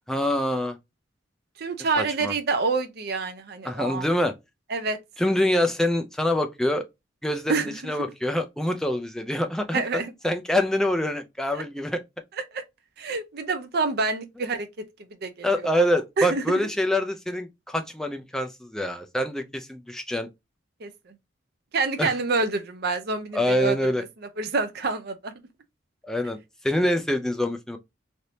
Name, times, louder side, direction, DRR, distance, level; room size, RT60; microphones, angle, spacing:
voice 1, 0.1-0.8 2.0-2.3 3.6-4.3 5.2-6.9 7.2-12.0 15.4-20.3 22.0-22.1 23.3-24.0 26.1-26.4 26.6-27.8, left 1 dB, 5° left, 0.4 m, -25 dB
voice 2, 1.6-4.1 4.7-5.0 7.5-7.9 9.7-10.1 11.5-11.6 12.5-12.6 13.0-14.9 15.2-15.7 16.2-16.6 20.8-21.1 21.7-24.1 24.4-25.3, right 4 dB, 55° right, 0.5 m, -27 dB
3.3 x 2.7 x 2.6 m
head